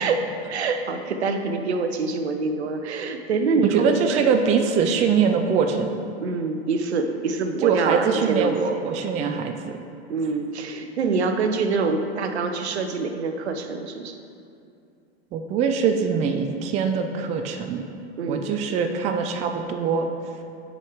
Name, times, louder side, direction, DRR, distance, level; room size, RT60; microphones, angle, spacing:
voice 1, 0.0-4.3 4.9-5.0 6.2-8.5 10.1-14.2 18.2-18.5, right 4 dB, 80° right, 6 dB, 0.7 m, -25 dB
voice 2, 3.6-6.0 7.6-9.8 15.3-17.8 18.3-20.1, right 6 dB, 20° right, 6 dB, 0.4 m, -23 dB
7.4 x 5.0 x 3.5 m, 2.5 s
hypercardioid pair, 105°, 32 cm